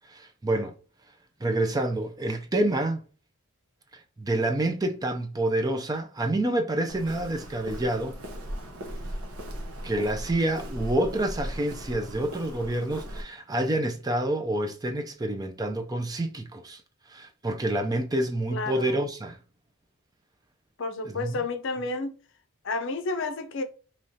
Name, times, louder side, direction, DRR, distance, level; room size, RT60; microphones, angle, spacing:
voice 1, 0.1-0.8 1.4-3.0 3.9-8.2 9.8-16.8 17.1-19.4 21.0-21.4, right 1 dB, 15° right, 0.4 m, -28 dB
Walk footsteps, 6.9-13.2, equal, 75° right, 0.9 m, -38 dB
voice 2, 18.5-19.0 20.8-22.2 22.6-23.6, left 3 dB, 55° left, 0.6 m, -31 dB
5.1 x 3.1 x 2.7 m
head